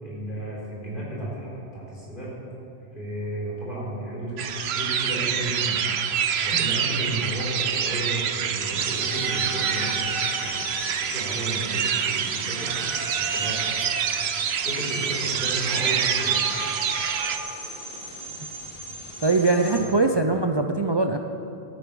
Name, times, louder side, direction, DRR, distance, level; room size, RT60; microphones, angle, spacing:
voice 1, 0.0-2.3 2.9-5.8 6.4-10.6 11.0-12.7 13.2-13.7 14.6-16.5 19.8-19.9, right 1 dB, 50° left, -6 dB, 4.1 m, -33 dB
sound 1, 4.4-17.4, right 8 dB, 80° right, 1.0 m, -26 dB
sound 2, 8.8-19.8, equal, 5° right, 3.3 m, -36 dB
voice 2, 19.2-21.2, right 3 dB, 35° right, 5 dB, 0.4 m, -22 dB
13.0 x 9.2 x 6.9 m, 2.7 s
omnidirectional pair, 1.1 m